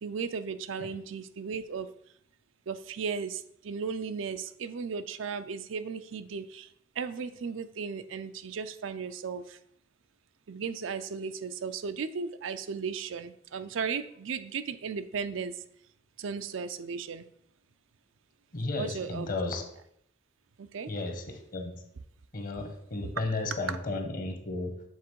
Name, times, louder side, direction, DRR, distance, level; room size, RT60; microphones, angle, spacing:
voice 1, 0.0-1.9 2.7-9.6 10.5-15.6 16.2-17.3 18.8-19.3 20.6-20.9 23.0-23.1 23.7-23.8, right 5 dB, 85° right, 11 dB, 0.4 m, -36 dB
voice 2, 18.5-19.6 20.9-21.8 22.3-24.8, left 2 dB, 45° left, 5 dB, 1.0 m, -34 dB
7.3 x 3.6 x 4.6 m, 0.71 s
head